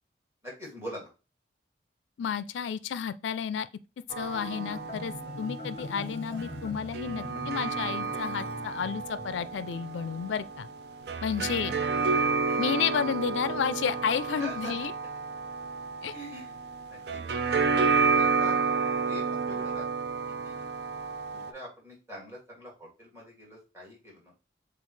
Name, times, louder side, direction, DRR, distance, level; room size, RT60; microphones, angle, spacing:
voice 1, 0.4-1.1 11.4-12.6 14.3-14.7 16.1-16.6 16.9-17.6 18.1-18.7 19.0-19.8 20.4-20.6 21.3-24.3, equal, 15° right, 2.1 m, -44 dB
voice 2, 2.2-3.7 4.2-10.7 11.2-11.7 12.6-14.9 16.0-16.1, left 7 dB, 90° left, 0.3 m, -31 dB
sound 1, 4.1-21.5, right 4 dB, 65° right, 0.4 m, -31 dB
Marimba xylophone, 4.2-9.3, left 2 dB, 30° left, 0.7 m, -42 dB
7.0 x 2.4 x 3.1 m
head